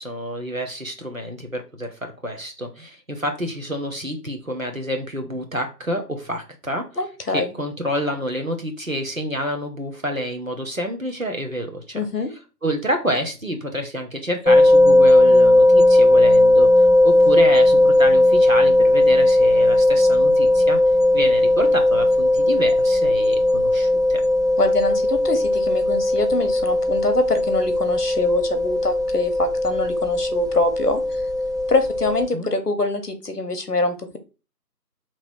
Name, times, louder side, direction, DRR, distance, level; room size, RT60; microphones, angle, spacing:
voice 1, 0.0-6.9 7.3-12.0 12.6-20.8 21.1-24.2 32.3-32.5, equal, 55° right, 3 dB, 0.8 m, -28 dB
voice 2, 7.0-7.5 11.9-12.3 24.6-31.0 31.7-34.2, left 2 dB, 65° left, 8 dB, 0.9 m, -24 dB
sound 1, 14.5-32.3, left 1 dB, 10° right, 0.3 m, -17 dB
2.9 x 2.8 x 4.4 m, 0.32 s
figure-of-eight pair, 180°, 50 cm